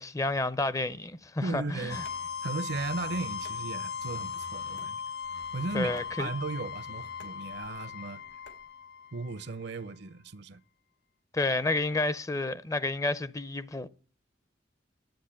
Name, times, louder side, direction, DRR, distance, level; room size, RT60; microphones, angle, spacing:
voice 1, 0.0-2.0 5.7-6.3 11.3-13.9, left 2 dB, 20° left, 0.5 m, -30 dB
voice 2, 1.4-2.0 2.4-5.0 5.5-5.9 6.2-8.2 9.1-10.6, right 3 dB, 65° right, 0.7 m, -36 dB
sound 1, 1.9-9.7, left 6 dB, 60° left, 1.1 m, -38 dB
sound 2, 2.1-8.7, left 3 dB, 90° left, 2.5 m, -59 dB
10.5 x 8.0 x 8.8 m
head